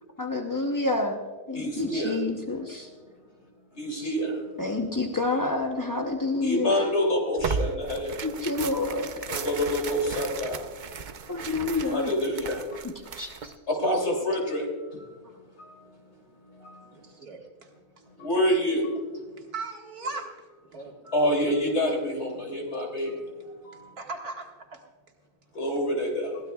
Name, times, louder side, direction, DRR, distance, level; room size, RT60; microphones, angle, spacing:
voice 1, 0.2-1.2 1.5-2.9 3.9-4.1 4.6-6.7 8.2-9.1 11.3-12.1 12.8-13.5, left 3 dB, 25° left, 2 dB, 0.4 m, -28 dB
voice 2, 1.5-2.2 3.8-4.4 6.4-8.2 9.3-10.6 11.8-12.6 13.7-14.6 16.6-16.8 18.2-18.9 21.0-23.1 23.7-23.8 25.5-26.3, equal, 45° left, 0 dB, 3.2 m, -26 dB
Tearing, 7.4-13.6, right 5 dB, 55° right, 0.5 m, -35 dB
voice 3, 16.9-17.7 19.4-21.3 21.9-22.0 24.0-24.8, right 3 dB, 75° right, 0 dB, 2.3 m, -39 dB
22.0 x 16.0 x 2.3 m, 1.4 s
omnidirectional pair, 1.6 m